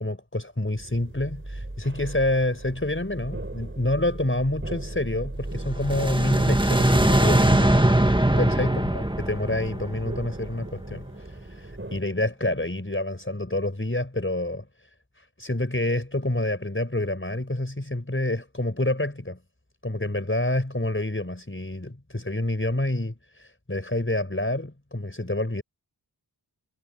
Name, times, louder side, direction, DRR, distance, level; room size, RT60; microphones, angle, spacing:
voice 1, 0.0-7.8 8.4-11.1 11.6-14.6 15.4-19.4 19.8-25.6, left 1 dB, 30° left, 5.7 m, -28 dB
sound 1, 0.8-12.0, right 1 dB, 30° right, 5.1 m, -38 dB
sound 2, 5.7-10.8, right 1 dB, 10° right, 1.7 m, -21 dB
wide cardioid pair, 40°, 41 cm